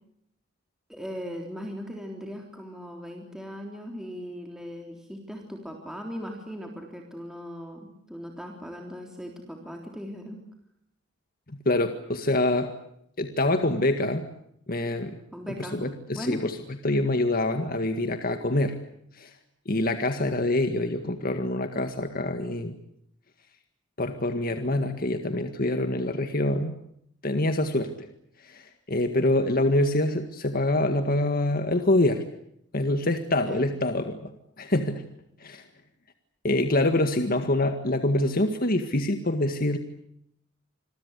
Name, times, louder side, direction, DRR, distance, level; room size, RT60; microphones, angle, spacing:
voice 1, 0.9-10.4 15.3-15.8 16.1-16.4 33.4-33.6, equal, 5° right, 1 dB, 3.6 m, -38 dB
voice 2, 11.5-12.7 13.2-14.3 14.7-15.2 15.6-16.6 16.8-18.8 19.1-19.4 19.7-22.7 24.0-26.7 27.2-28.1 28.4-32.2 32.7-34.3 34.6-35.0 35.4-35.7 36.4-39.8, left 1 dB, 50° left, 7 dB, 1.9 m, -25 dB
27.0 x 22.5 x 8.2 m, 0.73 s
head